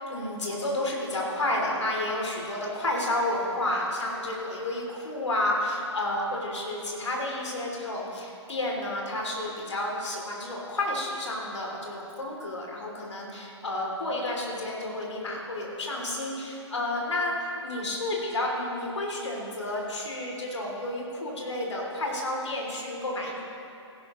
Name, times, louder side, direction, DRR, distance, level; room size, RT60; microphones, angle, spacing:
voice 1, 0.1-23.4, left 1 dB, 70° left, -1 dB, 2.9 m, -31 dB
16.0 x 11.5 x 3.0 m, 2.8 s
figure-of-eight pair, 120°, 15 cm